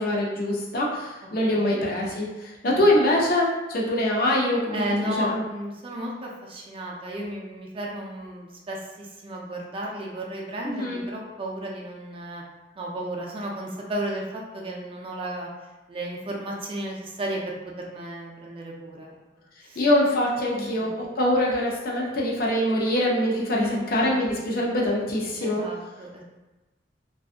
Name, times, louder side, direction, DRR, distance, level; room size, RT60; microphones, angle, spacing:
voice 1, 0.0-4.8 5.2-5.4 10.6-11.1 19.8-25.6, left 1 dB, 55° left, -3 dB, 0.5 m, -24 dB
voice 2, 1.2-1.8 4.7-12.4 12.8-15.5 15.9-19.1 19.7-19.8 20.5-20.9 23.5-23.9 25.4-26.2, right 1 dB, 30° right, -2 dB, 0.4 m, -33 dB
2.6 x 2.3 x 2.4 m, 1.1 s
head